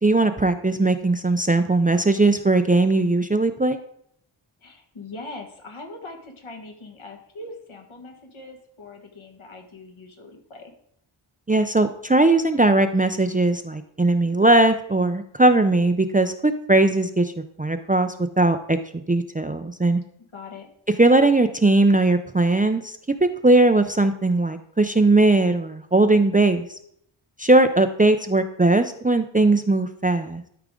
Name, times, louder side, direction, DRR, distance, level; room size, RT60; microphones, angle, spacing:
voice 1, 0.0-3.8 11.5-17.3 17.6-18.8 19.1-20.0 21.0-23.0 23.4-26.8 27.4-30.5, right 2 dB, 20° right, 8 dB, 0.4 m, -19 dB
voice 2, 4.6-10.7 20.3-20.7, left 2 dB, 70° left, 3 dB, 1.7 m, -41 dB
12.5 x 4.8 x 3.7 m, 0.68 s
wide cardioid pair, 75°, 50 cm